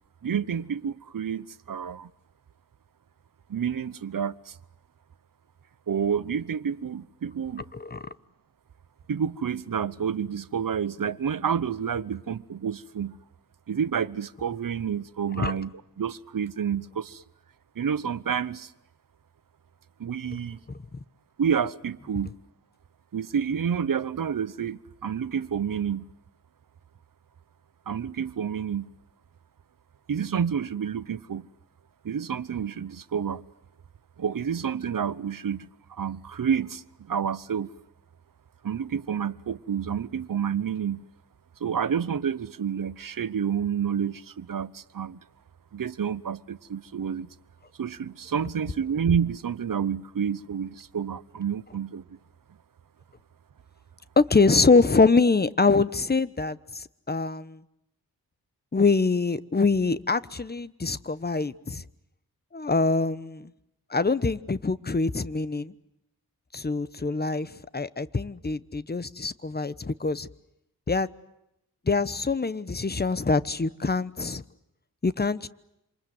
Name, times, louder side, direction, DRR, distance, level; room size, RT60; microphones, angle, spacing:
voice 1, 0.2-2.1 3.5-4.5 5.9-7.6 9.1-13.2 13.7-17.2 17.8-18.7 20.0-20.6 21.4-22.4 23.1-26.1 27.9-28.9 30.1-31.5 32.0-33.4 34.2-37.7 38.6-41.0 41.6-45.2 45.7-47.3 47.8-52.0, right 7 dB, 60° right, 1.0 m, -29 dB
voice 2, 7.7-8.1 15.3-15.5 54.2-57.6 58.7-61.8 62.5-63.5 63.9-65.7 66.5-70.3 70.9-71.1 71.9-74.4 75.0-75.5, left 4 dB, 25° left, 1.1 m, -24 dB
27.5 x 27.0 x 7.9 m
wide cardioid pair, 115°, 37 cm